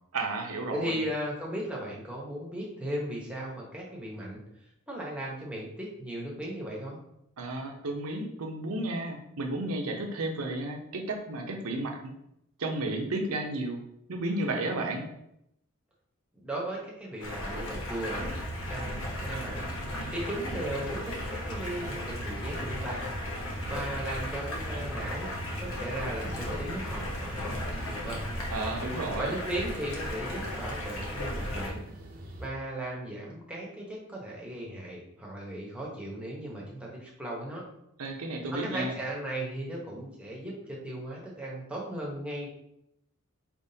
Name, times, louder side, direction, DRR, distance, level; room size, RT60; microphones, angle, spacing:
voice 1, 0.1-1.0 7.4-12.2 12.6-13.8 14.1-15.1 28.5-29.3 38.0-38.9, right 2 dB, 90° right, 2 dB, 0.8 m, -32 dB
voice 2, 0.7-4.4 4.9-7.0 16.3-18.3 18.7-19.7 20.1-23.1 23.6-25.3 25.6-28.2 29.2-31.8 32.4-37.6 38.5-42.5, right 1 dB, 5° right, -3 dB, 1.0 m, -36 dB
Stream, 17.2-31.7, left 1 dB, 70° left, 1.1 m, -36 dB
sound 1, 18.2-32.5, right 1 dB, 40° right, 0.6 m, -41 dB
4.5 x 3.6 x 2.8 m, 0.79 s
head